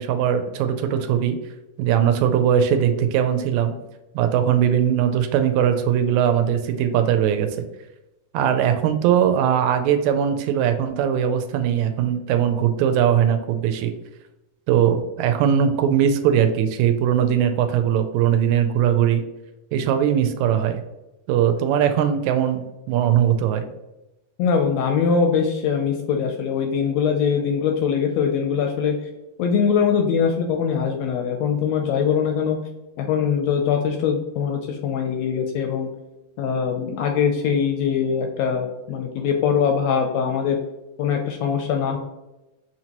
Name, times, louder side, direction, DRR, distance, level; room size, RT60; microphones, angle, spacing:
voice 1, 0.0-1.4 1.8-3.8 4.2-7.5 8.3-13.9 14.7-19.2 19.7-20.8 21.3-23.7, right 9 dB, 80° right, 7 dB, 1.8 m, -20 dB
voice 2, 24.4-29.0 29.4-32.6 33.0-35.9 36.4-40.6 41.0-42.0, left 7 dB, 80° left, 3 dB, 1.5 m, -22 dB
6.3 x 2.9 x 2.9 m, 0.97 s
omnidirectional pair, 3.4 m